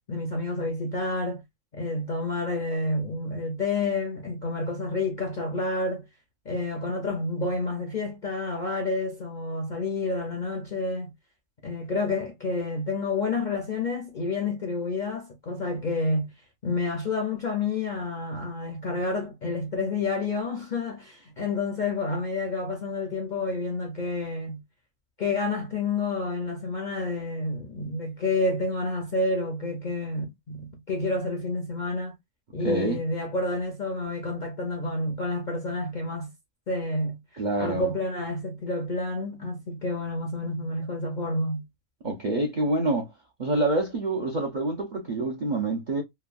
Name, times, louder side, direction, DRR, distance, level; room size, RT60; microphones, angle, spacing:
voice 1, 0.1-1.4 1.7-6.1 6.5-11.1 11.6-16.3 16.6-24.6 25.2-32.1 32.5-36.3 36.7-37.2 37.6-41.6, left 2 dB, 50° left, 0.6 m, -29 dB
voice 2, 32.6-33.0 37.4-37.9 42.0-43.1 43.4-46.0, right 2 dB, 55° right, 0.5 m, -26 dB
3.1 x 2.2 x 2.4 m
omnidirectional pair, 1.5 m